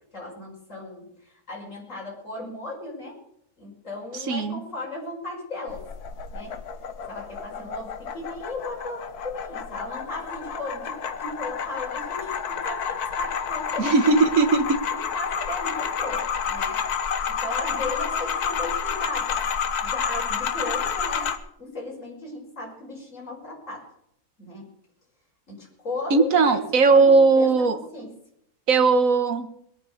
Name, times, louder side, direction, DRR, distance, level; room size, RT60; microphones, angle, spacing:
voice 1, 0.1-3.2 3.6-5.8 6.3-6.6 7.1-14.2 14.9-16.8 17.3-23.9 24.4-24.7 25.5-26.6 26.9-28.1, left 2 dB, 50° left, -3 dB, 6.1 m, -36 dB
voice 2, 4.1-4.6 13.8-14.8 26.1-27.8 28.7-29.5, right 4 dB, 55° right, 9 dB, 1.7 m, -18 dB
sound 1, 5.7-21.4, left 7 dB, 75° left, 1.6 m, -30 dB
21.5 x 9.1 x 6.6 m, 0.73 s
omnidirectional pair, 1.7 m